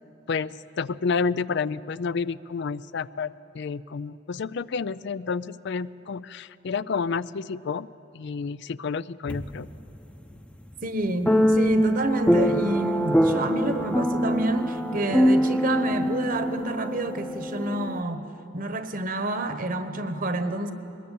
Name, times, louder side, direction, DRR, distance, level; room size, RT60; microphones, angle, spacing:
voice 1, 0.8-7.9 8.1-9.7, left 5 dB, 65° left, 0.4 m, -30 dB
Distant Sad Piano, 9.3-9.7 11.3-18.0, equal, 5° left, 0.8 m, -23 dB
voice 2, 10.8-18.2 18.5-20.7, right 2 dB, 50° right, 1.2 m, -29 dB
22.0 x 20.5 x 8.5 m
head